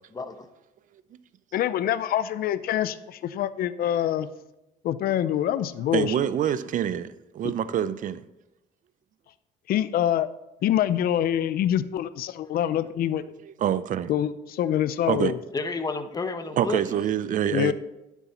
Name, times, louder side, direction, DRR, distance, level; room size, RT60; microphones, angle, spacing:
voice 1, 0.1-0.5 7.7-7.8 15.5-16.8 17.3-17.7, left 3 dB, 20° left, 0.9 m, -32 dB
voice 2, 1.5-4.3 4.8-6.1 9.7-10.3 10.6-13.2 14.1-15.4 17.5-17.7, left 11 dB, 65° left, 0.6 m, -25 dB
voice 3, 5.9-8.2 13.4-14.1 15.1-15.3 16.6-17.7, right 10 dB, 50° right, 0.6 m, -26 dB
11.0 x 7.2 x 4.3 m
cardioid pair, 110°, 17 cm